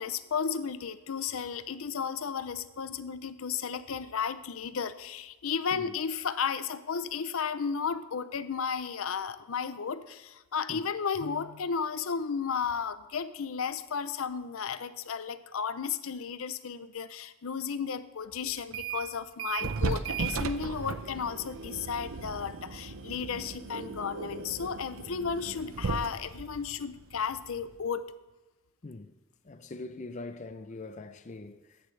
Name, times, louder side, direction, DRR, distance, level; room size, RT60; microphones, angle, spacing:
voice 1, 0.0-28.1, left 6 dB, 80° left, 0.6 m, -34 dB
sound 1, 18.6-19.1 19.4-27.9, right 5 dB, 75° right, 0.6 m, -36 dB
voice 2, 19.6-19.9 28.8-29.1 29.4-31.8, left 2 dB, 35° left, 0.5 m, -43 dB
14.5 x 10.5 x 3.3 m
head